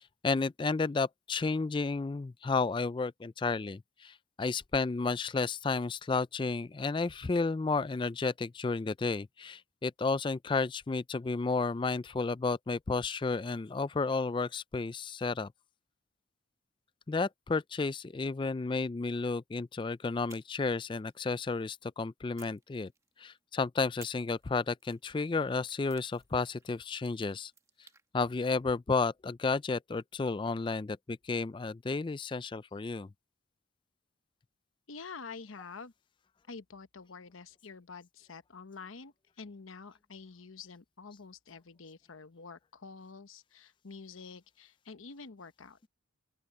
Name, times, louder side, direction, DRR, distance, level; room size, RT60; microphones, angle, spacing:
voice 1, 0.0-15.5 17.1-22.9 23.2-27.5 28.1-33.1, left 4 dB, 25° left, 0.3 m, -32 dB
sound 1, 20.3-21.8 22.4-23.4 24.0-28.0, right 5 dB, 15° right, 1.2 m, -59 dB
voice 2, 34.9-35.9 36.5-45.9, left 4 dB, 80° left, 0.9 m, -48 dB
open air
head